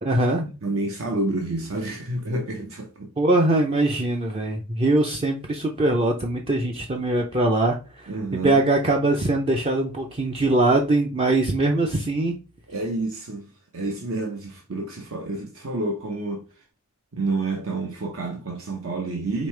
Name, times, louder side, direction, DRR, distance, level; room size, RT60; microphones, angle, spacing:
voice 1, 0.0-0.5 3.2-12.4, right 2 dB, 25° right, 0.5 m, -22 dB
voice 2, 0.6-3.1 8.1-8.6 12.7-16.6 17.1-19.5, right 2 dB, 65° right, 0.8 m, -29 dB
5.2 x 3.2 x 3.2 m
head